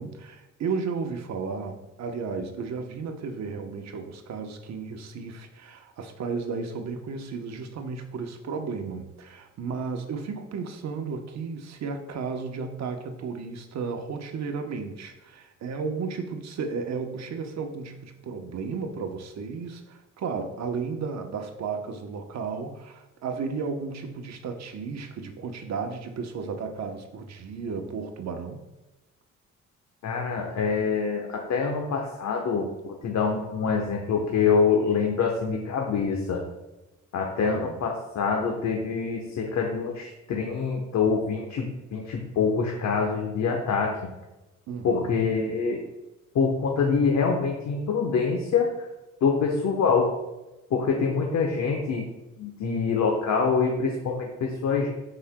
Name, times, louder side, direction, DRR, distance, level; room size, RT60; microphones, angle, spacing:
voice 1, 0.0-28.6 37.4-37.8 44.7-45.2, right 5 dB, 60° right, 5 dB, 0.9 m, -34 dB
voice 2, 30.0-36.4 37.1-41.7 41.9-43.9 44.8-45.8 46.3-48.7 49.2-50.1 50.7-52.0 52.4-54.9, left 5 dB, 65° left, 1 dB, 1.1 m, -25 dB
13.0 x 4.9 x 2.2 m, 1.0 s
cardioid pair, 90°, 30 cm